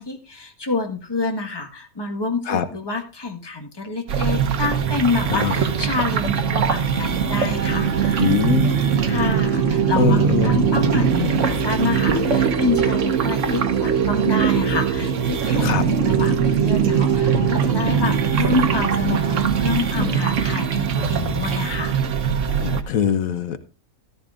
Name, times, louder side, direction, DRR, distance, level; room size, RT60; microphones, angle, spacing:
voice 1, 0.0-8.2 9.0-22.0, left 3 dB, 20° left, 4 dB, 1.4 m, -27 dB
sound 1, 4.1-22.8, right 7 dB, 60° right, 1.2 m, -21 dB
voice 2, 8.2-8.7 10.0-10.6 15.6-15.8 19.9-20.2 22.5-23.6, left 7 dB, 75° left, 11 dB, 1.3 m, -22 dB
13.5 x 12.5 x 2.5 m, 0.32 s
omnidirectional pair, 1.5 m